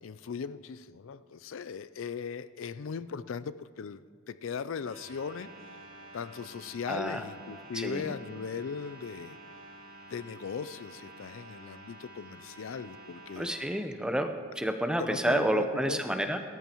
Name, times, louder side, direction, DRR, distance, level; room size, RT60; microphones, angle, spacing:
voice 1, 0.0-4.0 4.3-5.5 6.1-9.4 10.1-13.5 15.0-16.3, left 6 dB, 85° left, 15 dB, 0.4 m, -38 dB
sound 1, 4.8-13.6, right 1 dB, 90° right, 3.7 m, -50 dB
voice 2, 6.9-7.2 7.7-8.1 13.4-16.4, right 1 dB, 5° right, 6 dB, 0.8 m, -30 dB
28.5 x 14.0 x 3.0 m, 2.2 s
head